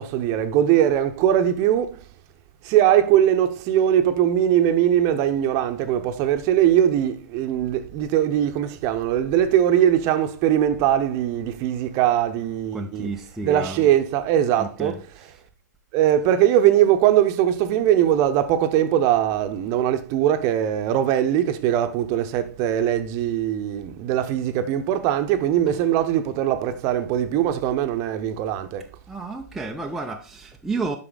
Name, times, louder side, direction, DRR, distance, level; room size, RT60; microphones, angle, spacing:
voice 1, 0.0-2.0 2.6-13.1 13.4-15.0 15.9-28.9, right 11 dB, 35° right, 0.8 m, -21 dB
voice 2, 12.7-13.9 14.6-15.0 29.1-31.0, right 3 dB, 5° right, 0.5 m, -31 dB
8.0 x 5.7 x 3.9 m
hypercardioid pair, 135°, 10 cm